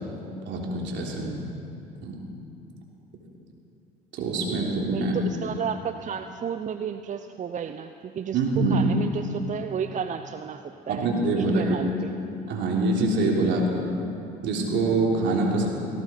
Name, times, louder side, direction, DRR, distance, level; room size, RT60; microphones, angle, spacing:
voice 1, 0.4-1.3 2.0-2.2 4.1-5.2 8.3-8.8 10.9-11.7 12.5-13.9 14.4-15.7, right 2 dB, 60° right, -1 dB, 3.4 m, -25 dB
voice 2, 4.9-12.1 13.5-13.7, right 7 dB, 35° right, 9 dB, 0.6 m, -32 dB
18.0 x 17.0 x 4.5 m, 2.8 s
supercardioid pair, 75°, 21 cm